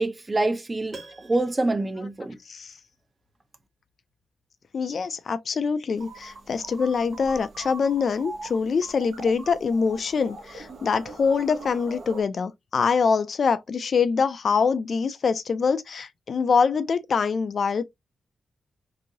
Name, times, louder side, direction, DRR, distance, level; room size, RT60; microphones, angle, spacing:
voice 1, 0.0-2.4, right 2 dB, 20° right, 0.4 m, -26 dB
Piano, 0.9-3.0 3.3-3.4, right 3 dB, 40° right, 1.3 m, -48 dB
voice 2, 4.7-17.8, left 5 dB, 50° left, 0.3 m, -24 dB
sound 1, 6.0-12.2, right 3 dB, 75° right, 0.7 m, -42 dB
2.9 x 2.7 x 2.6 m
wide cardioid pair, 160°, 0 cm